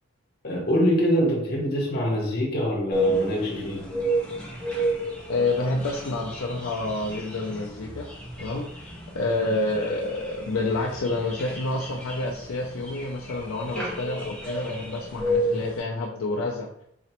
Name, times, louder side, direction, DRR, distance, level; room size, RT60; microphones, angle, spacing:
voice 1, 0.4-3.9 9.3-9.4, equal, 45° left, -1 dB, 1.0 m, -24 dB
sound 1, 2.9-15.8, right 1 dB, 5° left, 0.7 m, -31 dB
voice 2, 5.3-8.1 8.4-8.9 9.1-16.8, left 2 dB, 70° left, -1 dB, 0.4 m, -28 dB
4.1 x 2.9 x 2.9 m, 0.75 s
head